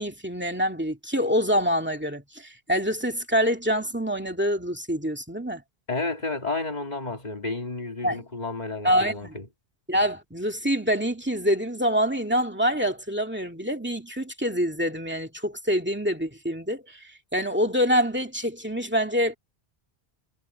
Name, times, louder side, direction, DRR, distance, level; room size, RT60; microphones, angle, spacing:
voice 1, 0.0-5.6 8.0-8.2 8.8-9.4 9.9-17.0 17.3-19.4, equal, 10° right, 2.2 m, -26 dB
voice 2, 5.9-9.5, left 3 dB, 45° left, 2.3 m, -31 dB
omnidirectional pair, 1.0 m